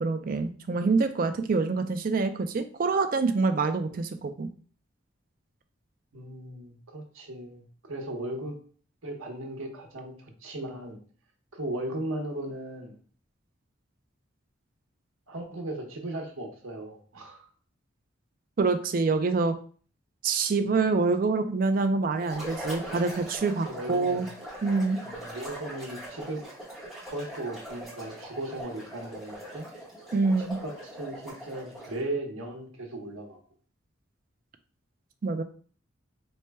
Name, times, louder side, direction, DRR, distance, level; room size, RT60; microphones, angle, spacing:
voice 1, 0.0-4.5 18.6-19.5 20.2-24.3 24.6-25.0 30.1-30.6 35.2-35.4, right 4 dB, 45° right, 8 dB, 0.3 m, -26 dB
voice 2, 6.1-8.5 9.0-11.0 11.5-13.0 15.3-17.5 23.6-24.3 25.0-26.4 27.0-29.7 30.4-33.4, right 1 dB, 85° right, 2 dB, 0.9 m, -37 dB
sound 1, 22.2-32.1, right 1 dB, ahead, 0.9 m, -41 dB
4.3 x 2.2 x 3.3 m, 0.43 s
head